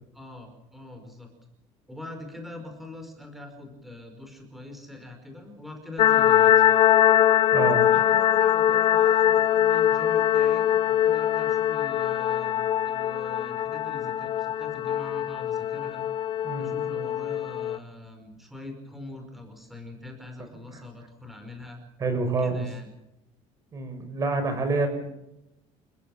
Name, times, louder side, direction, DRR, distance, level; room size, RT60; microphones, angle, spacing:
voice 1, 0.1-1.3 1.9-6.7 7.9-16.1 16.6-21.8 22.4-23.0, left 2 dB, ahead, 4 dB, 5.2 m, -43 dB
sound 1, 6.0-17.8, left 11 dB, 40° left, 0.7 m, -22 dB
voice 2, 7.5-8.0 16.4-17.0 22.0-22.6 23.7-25.1, right 3 dB, 25° right, 8 dB, 5.8 m, -28 dB
29.0 x 16.0 x 7.3 m, 0.85 s
cardioid pair, 175°, 13 cm